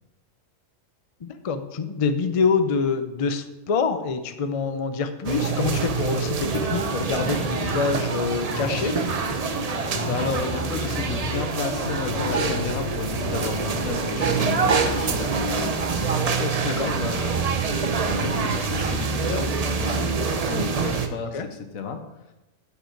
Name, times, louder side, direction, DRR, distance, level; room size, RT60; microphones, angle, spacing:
voice 1, 1.2-9.2 16.6-16.9 21.3-21.5, left 5 dB, 45° left, 9 dB, 0.4 m, -26 dB
sound 1, 5.2-21.1, right 4 dB, 45° right, 0.5 m, -26 dB
sound 2, 6.4-15.5, left 1 dB, 70° left, 2.8 m, -35 dB
voice 2, 10.0-15.8 16.2-17.4 18.1-19.5 19.8-20.1 20.4-22.0, left 5 dB, 85° left, 7 dB, 1.3 m, -32 dB
7.4 x 6.9 x 4.5 m, 0.98 s
omnidirectional pair, 1.4 m